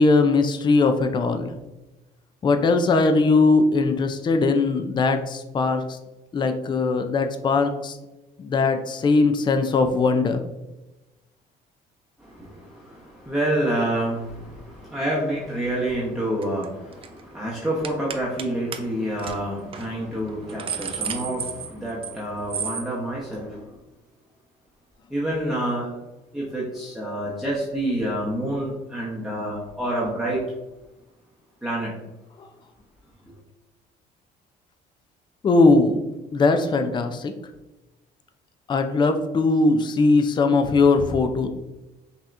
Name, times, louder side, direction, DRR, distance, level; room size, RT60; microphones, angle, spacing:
voice 1, 0.0-1.5 2.4-6.0 6.3-8.0 8.4-10.4 32.4-32.5 35.4-36.0 36.3-37.3 38.7-41.5, left 3 dB, 25° left, 7 dB, 0.4 m, -20 dB
voice 2, 12.2-23.7 25.1-25.9 26.3-30.4 31.6-31.9, right 1 dB, ahead, -7 dB, 0.9 m, -28 dB
sound 1, 16.4-16.6 16.9-17.2 17.8-18.5 18.7-18.8 19.2-19.3 19.7-19.9 20.3-22.2 22.5-22.9, right 7 dB, 35° right, 0.4 m, -32 dB
5.5 x 2.8 x 2.5 m, 1.0 s
cardioid pair, 110°, 17 cm